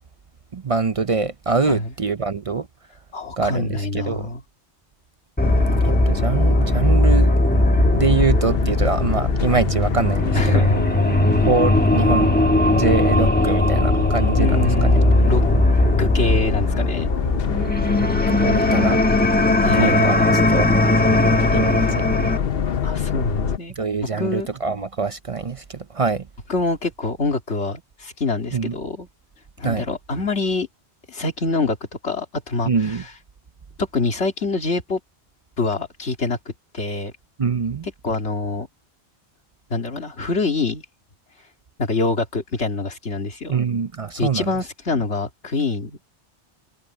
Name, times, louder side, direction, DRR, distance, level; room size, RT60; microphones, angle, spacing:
voice 1, 0.5-2.7 3.4-4.3 5.8-7.6 7.9-10.7 11.4-12.3 12.7-15.0 18.0-19.0 19.7-20.7 21.5-22.0 23.8-26.3 28.5-28.7 29.6-29.8 32.7-33.0 37.4-37.9 43.5-44.5, right 4 dB, 40° right, 0.5 m, -24 dB
voice 2, 3.1-4.4 10.3-10.8 11.0-11.3 14.4-15.4 16.0-17.1 19.6-20.6 22.8-23.8 24.2-24.5 26.5-29.1 29.6-30.7 31.1-31.8 32.0-33.1 33.8-35.0 35.6-36.4 36.7-37.1 38.0-38.7 39.7-40.8 41.8-43.6 44.2-46.2, left 3 dB, 85° left, 2.7 m, -25 dB
sound 1, 5.4-23.6, left 7 dB, 60° left, 1.0 m, -25 dB
sound 2, 5.4-22.4, left 1 dB, 10° left, 1.2 m, -19 dB
omnidirectional pair, 1.1 m